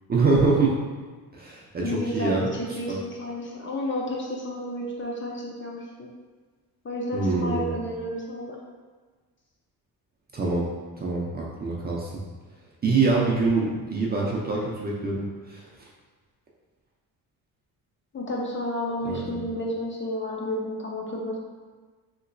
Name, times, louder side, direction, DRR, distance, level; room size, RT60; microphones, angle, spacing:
voice 1, 0.1-0.7 1.3-2.5 7.1-7.7 10.3-10.7 11.0-12.1 12.8-15.6 19.0-19.2, right 3 dB, 25° right, -4 dB, 0.4 m, -24 dB
voice 2, 1.8-6.1 6.8-8.6 18.1-21.4, left 1 dB, 30° left, -2 dB, 0.5 m, -31 dB
3.0 x 2.9 x 2.5 m, 1.4 s
cardioid pair, 125°, 39 cm